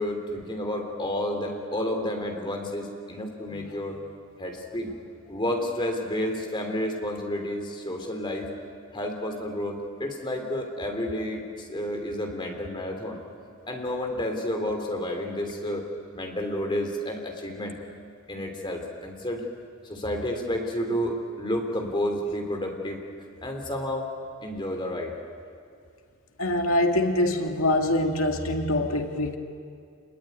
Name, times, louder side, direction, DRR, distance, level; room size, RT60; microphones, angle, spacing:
voice 1, 0.0-4.0 4.4-4.9 5.3-8.6 8.9-13.2 13.7-15.9 16.1-17.7 18.3-19.4 19.9-23.0 23.4-24.1 24.4-25.1, left 1 dB, 20° left, 2 dB, 3.5 m, -30 dB
voice 2, 26.4-29.4, left 1 dB, 80° left, 3 dB, 2.2 m, -24 dB
27.5 x 21.5 x 9.5 m, 2.3 s
head